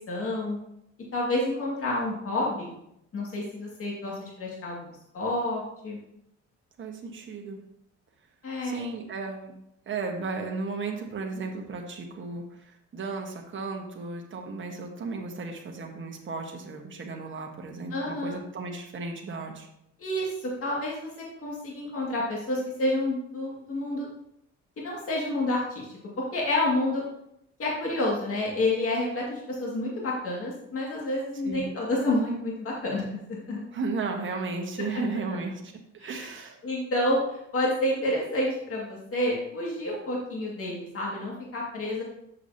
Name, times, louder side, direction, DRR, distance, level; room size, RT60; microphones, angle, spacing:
voice 1, 0.1-0.6 1.1-2.7 3.1-6.0 8.4-8.9 17.9-18.4 20.0-24.1 24.8-27.0 27.6-33.6 34.8-35.0 36.0-36.3 36.6-42.0, left 1 dB, 50° left, -3 dB, 2.1 m, -29 dB
voice 2, 6.8-7.6 8.6-9.6 9.9-19.7 31.4-31.7 33.7-35.6 35.9-36.6, right 4 dB, 40° right, 1 dB, 1.2 m, -34 dB
7.3 x 6.4 x 2.8 m, 0.79 s
cardioid pair, 90°, 30 cm